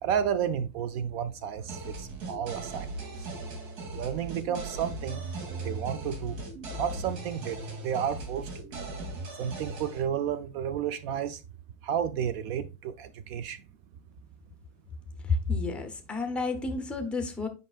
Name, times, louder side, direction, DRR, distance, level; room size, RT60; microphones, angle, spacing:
voice 1, 0.0-2.9 3.2-3.3 3.9-5.3 5.6-6.4 6.7-8.7 9.3-11.4 11.8-13.6, right 8 dB, 50° right, 0.5 m, -32 dB
sound 1, 1.7-10.0, right 2 dB, 85° right, 2.6 m, -38 dB
voice 2, 15.2-17.5, left 3 dB, 5° left, 0.5 m, -30 dB
7.8 x 5.1 x 2.3 m
supercardioid pair, 160°, 40 cm